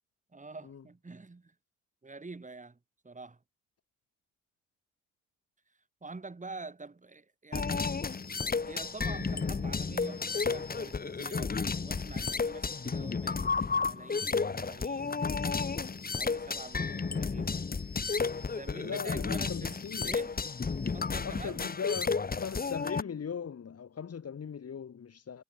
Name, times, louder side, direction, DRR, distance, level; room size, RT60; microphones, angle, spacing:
voice 1, 0.3-1.5 2.0-2.8 3.0-3.4 6.0-7.9 8.6-15.8 16.2-17.7 18.5-20.3 20.9-21.8, right 3 dB, 20° right, 4.3 m, -46 dB
sound 1, 7.5-23.0, left 4 dB, 25° left, 1.7 m, -32 dB
voice 2, 18.7-20.1 21.2-25.4, left 7 dB, 45° left, 3.6 m, -39 dB
hypercardioid pair, 55°, 35 cm